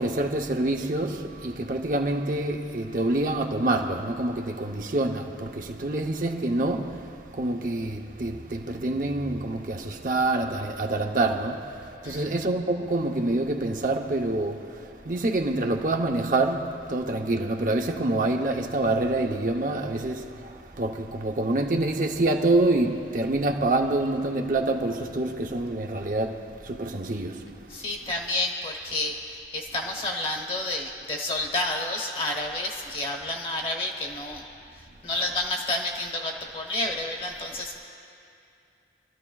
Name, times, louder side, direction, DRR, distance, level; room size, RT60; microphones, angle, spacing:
voice 1, 0.0-27.6, right 2 dB, 50° right, 0.7 m, -26 dB
voice 2, 27.7-34.4 34.7-37.8, left 2 dB, 30° left, 1.3 m, -30 dB
27.0 x 13.0 x 2.3 m
head